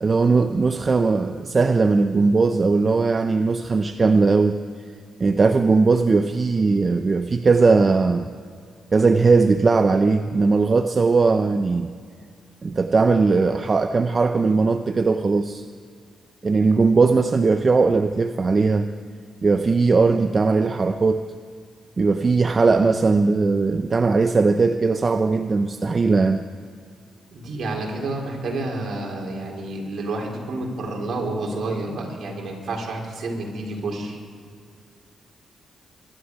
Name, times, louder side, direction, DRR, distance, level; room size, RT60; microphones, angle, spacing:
voice 1, 0.0-4.6 5.2-8.3 8.9-11.9 12.6-15.6 16.4-18.9 19.4-21.2 22.0-26.4, right 4 dB, 40° right, 8 dB, 0.6 m, -19 dB
voice 2, 27.3-34.2, right 2 dB, 65° right, 0 dB, 4.1 m, -29 dB
24.5 x 12.0 x 4.8 m, 2.2 s
cardioid pair, 80°, 0 cm